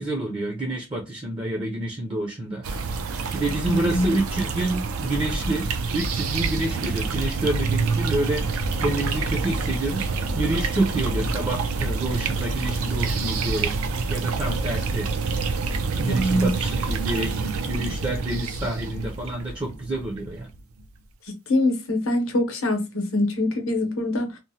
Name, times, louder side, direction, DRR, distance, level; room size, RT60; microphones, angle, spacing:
voice 1, 0.0-2.7 3.3-5.7 5.9-10.1 10.3-13.7 14.1-15.1 16.0-17.3 17.7-20.5, right 1 dB, 25° right, 0.5 m, -28 dB
sound 1, 2.6-20.8, right 4 dB, 85° right, 0.4 m, -27 dB
voice 2, 3.7-4.2 16.1-16.5 21.3-24.4, left 1 dB, 75° left, 0.7 m, -24 dB
2.9 x 2.0 x 2.7 m
head